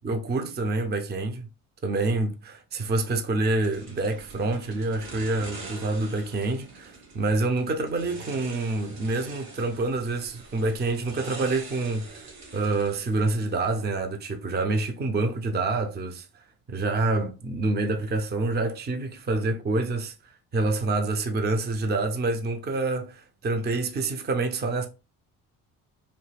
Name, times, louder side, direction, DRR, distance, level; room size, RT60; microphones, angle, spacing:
voice 1, 0.0-1.5 1.8-16.4 16.7-24.9, right 3 dB, 25° right, 0.6 m, -27 dB
sound 1, 3.6-13.7, right 3 dB, 70° right, 1.6 m, -44 dB
3.2 x 2.1 x 3.3 m
supercardioid pair, 65°, 38 cm